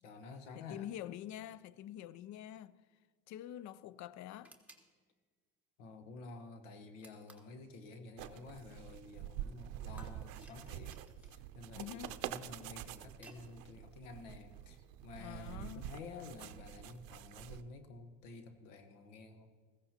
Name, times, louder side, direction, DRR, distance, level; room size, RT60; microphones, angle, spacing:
voice 1, 0.0-0.9 5.8-19.5, left 3 dB, 85° left, 1.2 m, -51 dB
voice 2, 0.5-2.8 3.3-4.6 11.8-12.2 15.2-15.9, left 12 dB, 50° left, 0.5 m, -46 dB
sound 1, 4.4-4.9 7.0-7.6 10.0-11.4 12.5-13.5, right 2 dB, 5° right, 1.4 m, -59 dB
sound 2, 8.2-17.6, right 12 dB, 65° right, 0.6 m, -47 dB
15.5 x 15.0 x 2.9 m
supercardioid pair, 85°, 38 cm